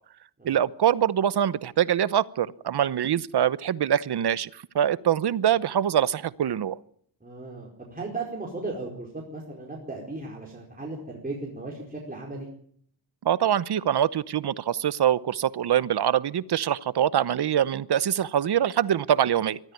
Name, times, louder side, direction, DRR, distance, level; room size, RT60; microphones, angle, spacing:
voice 1, 0.4-6.8 13.2-19.6, right 10 dB, 70° right, 17 dB, 0.9 m, -24 dB
voice 2, 7.2-12.5, right 3 dB, 20° right, -2 dB, 4.8 m, -36 dB
23.0 x 13.5 x 9.2 m, 0.62 s
wide cardioid pair, 135°, 41 cm